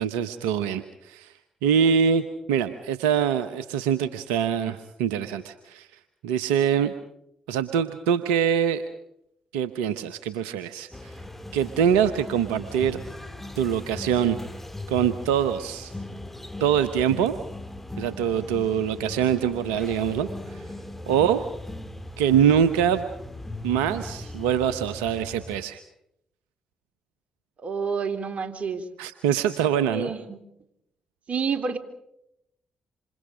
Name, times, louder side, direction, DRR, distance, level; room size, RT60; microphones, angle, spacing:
voice 1, 0.0-1.3 1.6-5.9 6.2-6.9 7.5-8.8 9.5-11.1 11.5-13.0 13.6-14.4 14.9-15.9 16.6-17.3 18.0-20.6 21.1-21.4 22.2-23.1 23.6-25.8 29.0-30.1, right 8 dB, 85° right, 11 dB, 1.0 m, -24 dB
sound 1, 10.9-25.6, left 1 dB, 10° left, 3.1 m, -39 dB
voice 2, 27.6-28.9 29.8-30.4 31.3-31.8, right 5 dB, 50° right, 8 dB, 3.3 m, -29 dB
27.5 x 27.5 x 5.1 m, 0.78 s
hypercardioid pair, 40°, 3 cm